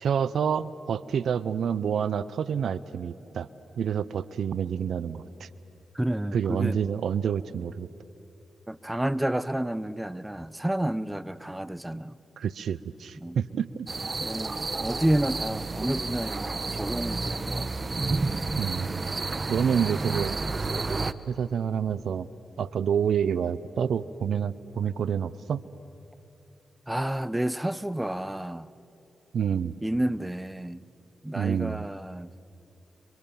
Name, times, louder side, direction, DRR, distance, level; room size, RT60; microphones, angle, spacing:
voice 1, 0.0-3.5 3.8-5.5 6.3-7.9 12.4-13.9 18.6-19.0 19.5-20.4 21.3-22.3 22.6-25.6 29.3-29.7 31.3-31.9, right 7 dB, 75° right, 18 dB, 0.6 m, -28 dB
voice 2, 5.9-6.8 8.7-12.1 13.2-13.4 14.2-17.9 26.9-28.7 29.8-30.8 31.2-32.3, right 1 dB, 10° right, 18 dB, 0.8 m, -30 dB
sound 1, 13.9-21.1, right 3 dB, 40° right, 1.0 m, -30 dB
30.0 x 24.5 x 7.1 m, 3.0 s
supercardioid pair, 45°, 0 cm